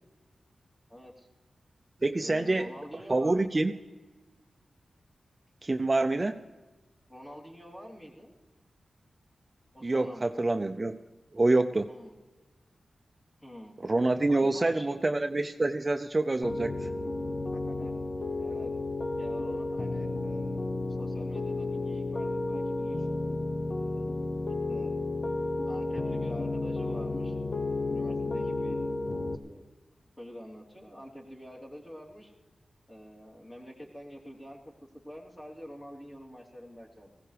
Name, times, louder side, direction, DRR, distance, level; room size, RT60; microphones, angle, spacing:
voice 1, 0.9-1.3 2.1-3.7 7.1-8.3 9.7-10.3 11.9-12.1 13.4-13.7 14.3-15.0 17.5-17.9 18.3-18.7 19.2-23.2 23.8-24.3 24.7-24.9 25.7-27.3 27.6-29.6 30.2-32.3 32.9-34.6 35.0-37.2, equal, 20° left, -3 dB, 3.4 m, -46 dB
voice 2, 2.0-2.7 3.1-3.7 5.6-6.4 9.8-11.0 11.3-11.9 13.8-16.9, right 2 dB, 30° right, 7 dB, 0.5 m, -26 dB
Piano, 16.4-29.3, left 2 dB, 40° left, 0.8 m, -32 dB
20.0 x 16.0 x 3.4 m, 1.2 s
wide cardioid pair, 75°, 0 cm